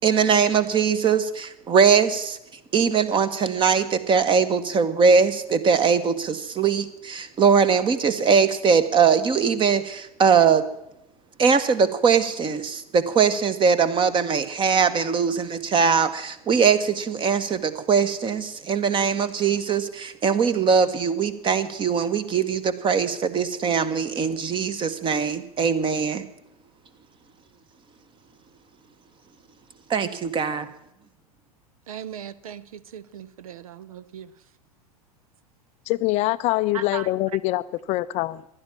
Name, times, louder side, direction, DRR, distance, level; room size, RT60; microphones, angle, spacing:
voice 1, 0.0-2.4 2.7-10.6 11.4-26.3 29.9-30.7, right 6 dB, 25° right, 1.4 m, -21 dB
voice 2, 31.9-34.3 36.7-37.1, right 9 dB, 65° right, 0.7 m, -38 dB
voice 3, 35.9-37.6 37.9-38.4, left 17 dB, 35° left, 0.5 m, -24 dB
15.5 x 11.5 x 7.3 m
figure-of-eight pair, 90°, 19 cm